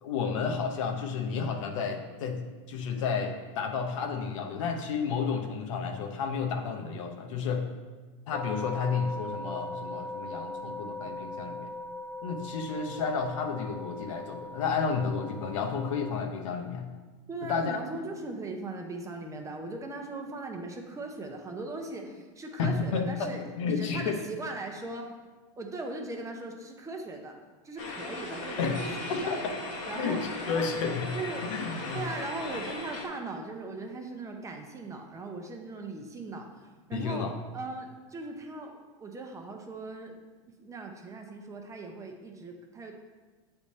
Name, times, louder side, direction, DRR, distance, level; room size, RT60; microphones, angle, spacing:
voice 1, 0.0-2.4 2.7-7.7 8.3-11.7 12.2-16.9 17.4-17.8 22.6-23.3 23.6-24.2 28.6-28.8 29.1-29.5 29.9-31.1 31.4-32.0 36.9-37.3, left 5 dB, 75° left, 3 dB, 0.8 m, -31 dB
sound 1, 8.3-16.2, left 1 dB, 10° left, 0.4 m, -40 dB
voice 2, 17.3-25.1 25.6-27.4 27.6-29.3 29.8-30.2 30.5-30.6 31.1-31.4 31.9-36.5 36.9-38.7 39.0-40.2 40.6-42.9, right 2 dB, 20° right, 3 dB, 0.8 m, -39 dB
sound 2, 27.8-33.1, left 2 dB, 50° left, 1.2 m, -37 dB
7.0 x 3.5 x 4.1 m, 1.3 s
hypercardioid pair, 110°, 17 cm